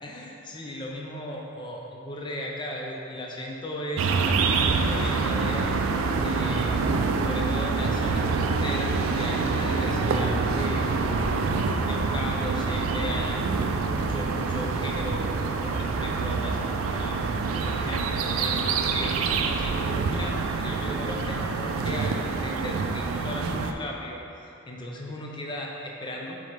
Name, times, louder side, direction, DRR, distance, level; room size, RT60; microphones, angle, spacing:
voice 1, 0.0-5.9 6.2-6.8 7.1-11.4 11.9-15.3 15.6-17.2 17.6-24.2 24.7-26.4, left 1 dB, 20° left, -1 dB, 0.5 m, -36 dB
sound 1, 4.0-23.7, right 4 dB, 90° right, 0.4 m, -26 dB
7.1 x 3.8 x 3.5 m, 2.8 s
head